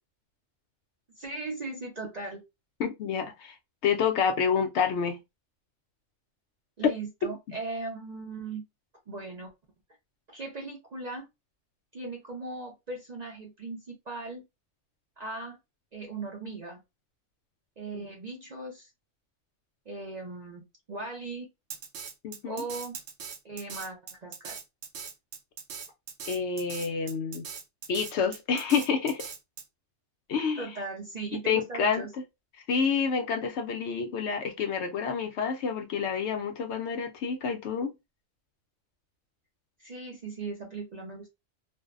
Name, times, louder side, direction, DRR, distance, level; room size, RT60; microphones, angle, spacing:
voice 1, 1.1-2.4 6.8-8.6 9.1-9.5 10.3-11.3 11.9-14.4 15.2-15.6 15.9-16.8 17.8-18.9 19.9-21.5 22.5-23.0 23.4-24.6 30.6-32.1 39.8-41.3, right 3 dB, 45° right, 0.5 m, -38 dB
voice 2, 2.8-3.5 3.8-5.2 6.8-6.9 17.9-18.1 22.2-22.6 26.3-27.5 27.9-29.3 30.3-30.7 31.5-32.0 32.7-37.9, left 6 dB, 70° left, 0.8 m, -28 dB
Drum kit, 21.7-29.6, right 7 dB, 75° right, 0.9 m, -41 dB
2.5 x 2.1 x 2.3 m
omnidirectional pair, 1.3 m